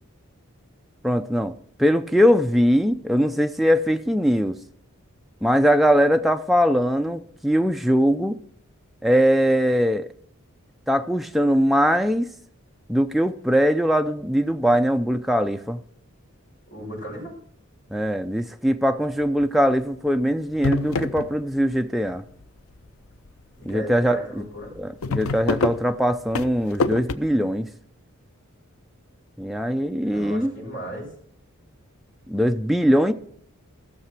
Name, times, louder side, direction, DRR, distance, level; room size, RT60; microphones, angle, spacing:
voice 1, 1.0-4.6 5.4-8.4 9.0-10.1 10.9-12.3 12.9-15.8 17.9-22.2 23.7-24.5 24.8-27.7 29.4-30.5 32.3-33.1, equal, ahead, 0.4 m, -21 dB
voice 2, 16.7-17.4 23.6-24.7 30.0-31.1, right 1 dB, 40° left, 5.4 m, -36 dB
sound 1, 19.2-19.6 20.1-20.2 20.5-21.8 22.1-22.7 23.3-23.4 23.7-23.8 24.1-24.2 24.5-27.1, left 3 dB, 80° left, 0.6 m, -27 dB
14.5 x 6.7 x 5.9 m
head